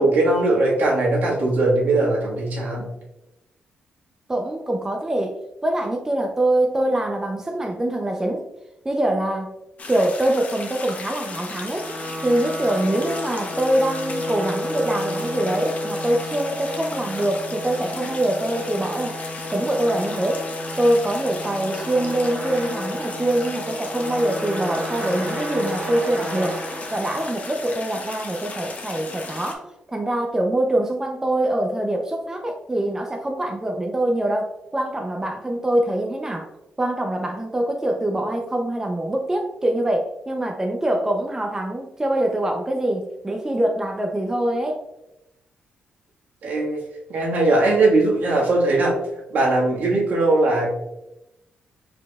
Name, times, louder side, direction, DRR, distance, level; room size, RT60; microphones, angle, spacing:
voice 1, 0.0-2.9 46.4-46.8 47.1-48.9 49.3-50.7, right 2 dB, 70° right, -3 dB, 1.5 m, -19 dB
voice 2, 4.3-5.3 5.6-8.4 8.8-9.5 9.9-11.9 12.2-19.1 19.5-20.4 20.8-26.6 26.9-36.5 36.8-44.8, right 1 dB, 15° right, 1 dB, 0.5 m, -24 dB
sound 1, 9.8-29.5, left 3 dB, 45° left, 0.7 m, -36 dB
sound 2, 11.4-27.7, equal, 30° right, 1.5 m, -32 dB
4.6 x 4.0 x 2.3 m, 0.91 s
cardioid pair, 95°, 3 cm